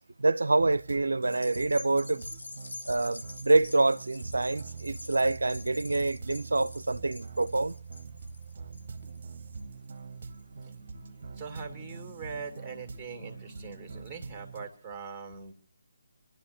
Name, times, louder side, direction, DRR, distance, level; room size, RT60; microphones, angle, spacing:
voice 1, 0.2-2.3 2.9-7.7, right 2 dB, 70° right, 0.6 m, -26 dB
sound 1, 0.6-14.7, right 4 dB, 40° right, 1.1 m, -44 dB
sound 2, 1.3-9.9 10.4-10.5, left 2 dB, 65° left, 0.9 m, -47 dB
sound 3, 8.7-14.1, left 1 dB, 40° left, 4.0 m, -55 dB
voice 2, 11.3-15.5, right 5 dB, 5° right, 2.2 m, -42 dB
27.5 x 11.5 x 3.0 m
figure-of-eight pair, 150°, 0 cm